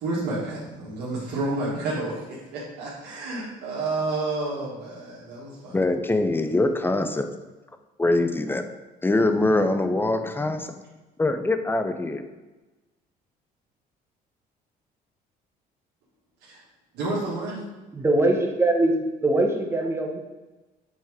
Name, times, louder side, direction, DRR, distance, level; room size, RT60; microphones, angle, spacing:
voice 1, 0.0-5.8 16.4-16.6 16.9-17.7, right 2 dB, 80° right, -7 dB, 1.6 m, -30 dB
voice 2, 5.7-7.3 8.0-8.7 9.0-10.7 11.2-12.3, left 2 dB, 15° left, 8 dB, 0.6 m, -23 dB
voice 3, 17.9-18.9 19.2-20.2, right 2 dB, 15° right, 2 dB, 1.1 m, -22 dB
7.2 x 3.6 x 4.6 m, 1.1 s
cardioid pair, 110°, 17 cm